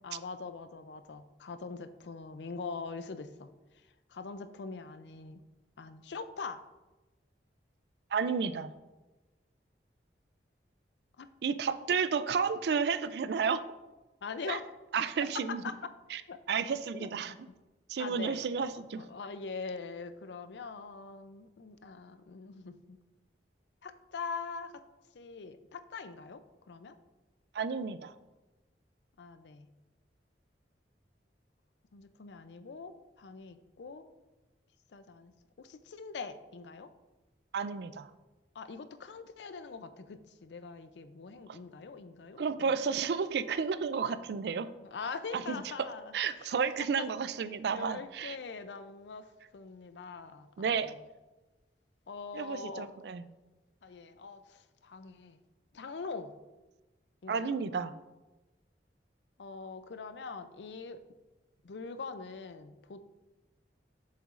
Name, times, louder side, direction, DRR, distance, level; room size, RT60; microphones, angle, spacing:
voice 1, 0.0-5.4 5.8-6.6 11.2-11.3 14.2-14.7 15.2-15.9 16.3-16.6 17.0-17.4 18.0-23.0 23.8-24.8 25.1-27.0 29.2-29.7 31.9-34.1 34.9-36.9 38.5-42.4 44.8-47.1 47.5-51.0 52.1-52.9 53.8-55.4 55.7-56.3 57.2-57.6 59.4-61.0 61.6-63.0, left 4 dB, 75° left, 11 dB, 0.5 m, -43 dB
voice 2, 8.1-8.7 11.4-13.6 14.5-14.6 14.9-15.6 16.1-16.2 16.5-17.3 17.9-19.0 27.5-28.1 37.5-38.1 41.5-41.6 42.4-44.7 45.3-45.6 46.1-48.4 50.6-50.9 52.3-53.2 57.3-57.9, right 6 dB, 65° right, 14 dB, 0.4 m, -32 dB
7.4 x 7.0 x 2.5 m, 1.1 s
head